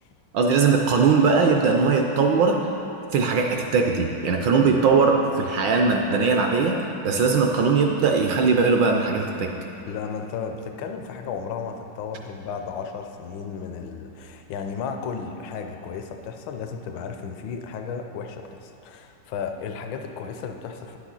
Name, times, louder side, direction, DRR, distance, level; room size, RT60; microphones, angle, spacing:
voice 1, 0.3-2.7 3.1-9.6, right 4 dB, 75° right, 2 dB, 1.1 m, -20 dB
voice 2, 9.9-21.0, left 6 dB, 75° left, 5 dB, 1.2 m, -34 dB
10.5 x 7.3 x 3.8 m, 2.8 s
omnidirectional pair, 2.4 m